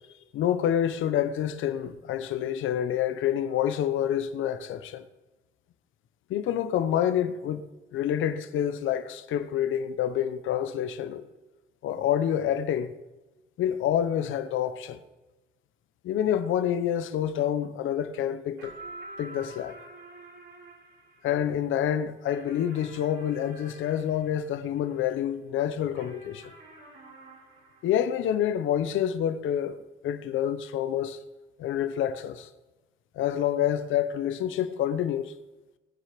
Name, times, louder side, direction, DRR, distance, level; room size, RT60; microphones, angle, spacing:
voice 1, 0.3-5.0 6.3-11.2 11.8-12.9 13.6-15.0 16.0-18.7 19.2-19.8 21.2-26.5 27.8-29.8 30.0-31.2 31.6-32.5 33.1-35.3, left 10 dB, 80° left, 1.0 m, -27 dB
Keyboard (musical), 18.6-21.0, right 2 dB, 65° right, 1.3 m, -46 dB
sound 1, 18.6-25.3 26.0-28.8, right 3 dB, 85° right, 5.5 m, -52 dB
21.0 x 7.7 x 5.2 m
cardioid pair, 90°, 20 cm